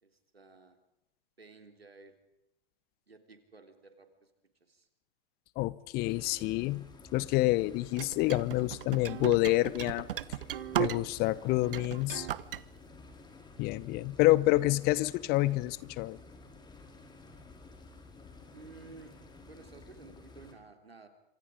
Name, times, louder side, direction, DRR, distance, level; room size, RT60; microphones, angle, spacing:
voice 1, 0.0-0.8 1.4-2.1 3.1-4.3 4.7-4.9 18.5-19.2 19.5-21.1, right 4 dB, 85° right, 7 dB, 3.6 m, -53 dB
voice 2, 5.6-6.9 7.1-10.1 10.8-12.3 13.6-16.2, left 18 dB, 30° left, 20 dB, 0.9 m, -28 dB
sound 1, 6.0-20.5, left 3 dB, 15° left, 4.4 m, -53 dB
sound 2, 8.0-11.3 11.6-12.6, right 11 dB, 65° right, 0.9 m, -36 dB
27.0 x 26.0 x 5.1 m, 0.89 s
figure-of-eight pair, 105°, 30 cm